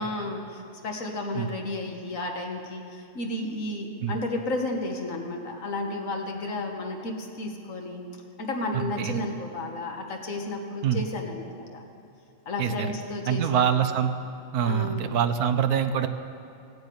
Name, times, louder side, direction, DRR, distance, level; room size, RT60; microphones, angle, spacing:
voice 1, 0.0-8.0 8.4-11.8 12.4-13.6 14.6-15.1, left 2 dB, 60° left, 2 dB, 1.8 m, -32 dB
voice 2, 8.7-9.2 10.8-11.0 12.6-12.9 13.3-14.1 14.5-16.1, right 8 dB, 80° right, 9 dB, 1.3 m, -25 dB
16.0 x 8.1 x 9.3 m, 2.7 s
omnidirectional pair, 1.6 m